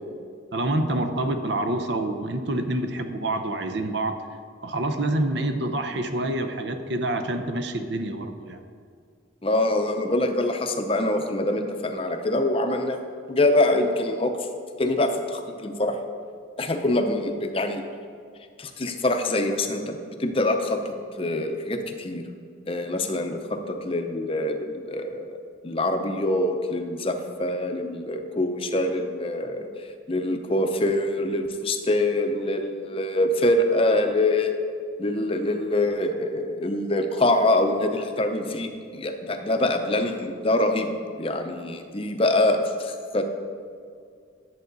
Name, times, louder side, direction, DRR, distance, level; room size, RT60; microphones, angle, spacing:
voice 1, 0.5-4.2 4.6-8.6, right 1 dB, 65° right, 7 dB, 0.7 m, -27 dB
voice 2, 9.4-13.0 13.3-14.3 14.8-16.0 16.6-17.8 18.6-22.2 22.7-25.4 25.6-29.7 30.1-34.6 35.0-40.9 41.2-43.2, left 1 dB, 30° left, 5 dB, 0.6 m, -24 dB
11.0 x 7.6 x 3.9 m, 2.2 s
head